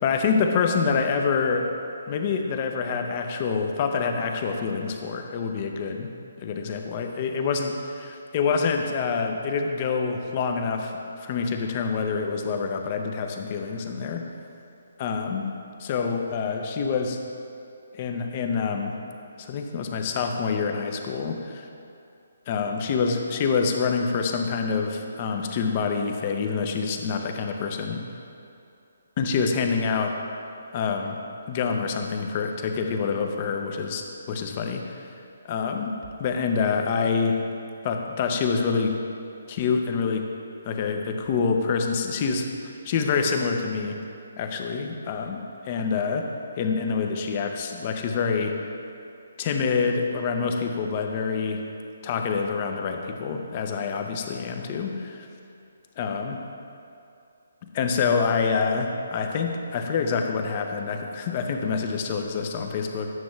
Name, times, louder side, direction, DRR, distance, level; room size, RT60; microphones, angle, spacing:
voice 1, 0.0-1.7 2.1-6.1 6.4-14.2 15.0-15.5 15.8-17.2 17.9-19.0 19.4-21.7 22.5-28.0 29.2-30.2 30.7-31.2 31.5-35.1 35.4-37.4 37.8-39.0 39.5-40.3 40.6-44.0 44.4-46.3 46.6-48.6 49.4-51.6 52.0-55.3 56.0-56.4 57.7-63.1, left 5 dB, 35° left, 4 dB, 0.6 m, -26 dB
9.2 x 6.0 x 3.2 m, 2.6 s
figure-of-eight pair, 145°, 0 cm